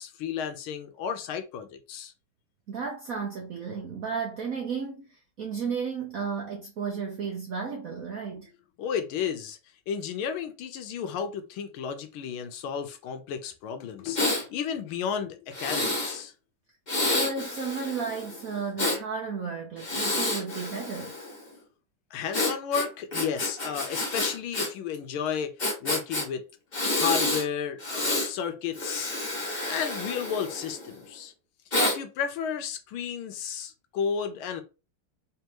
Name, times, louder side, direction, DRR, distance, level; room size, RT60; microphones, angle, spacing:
voice 1, 0.0-2.1 8.8-9.6 9.9-16.3 22.1-26.4 26.9-29.1 29.6-31.3 31.8-34.6, left 7 dB, 75° left, 1.5 m, -33 dB
voice 2, 2.7-8.5 17.0-21.1, right 5 dB, 65° right, 0.8 m, -33 dB
Breathing, 14.2-14.4 15.5-16.2 16.9-19.0 19.8-21.4 22.3-24.7 24.9-25.0 25.6-26.2 26.7-27.4 27.8-28.3 28.7-30.9 31.7-32.0, left 2 dB, 25° left, 1.1 m, -29 dB
3.6 x 3.4 x 3.0 m
omnidirectional pair, 2.4 m